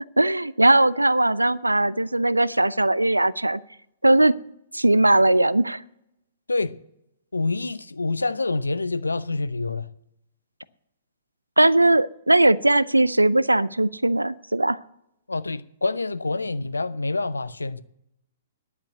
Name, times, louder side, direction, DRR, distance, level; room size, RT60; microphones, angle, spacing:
voice 1, 0.2-3.6 4.0-4.3 4.7-5.8 11.6-14.8, right 1 dB, 85° right, 0.4 m, -19 dB
voice 2, 7.3-9.9 15.3-17.8, left 3 dB, 80° left, 0.6 m, -27 dB
10.5 x 8.4 x 8.2 m
figure-of-eight pair, 115°, 0 cm